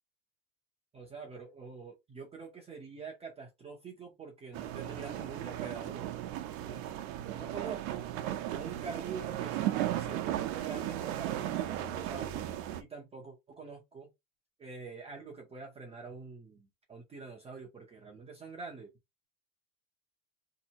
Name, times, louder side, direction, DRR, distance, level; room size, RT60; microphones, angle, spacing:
voice 1, 0.9-6.1 6.6-6.8 7.3-8.1 8.5-12.4 12.8-14.1 14.6-18.9, right 4 dB, 15° right, 0.5 m, -45 dB
sound 1, 4.5-12.8, right 12 dB, 65° right, 0.7 m, -36 dB
2.9 x 2.6 x 4.0 m
cardioid pair, 165°, 42 cm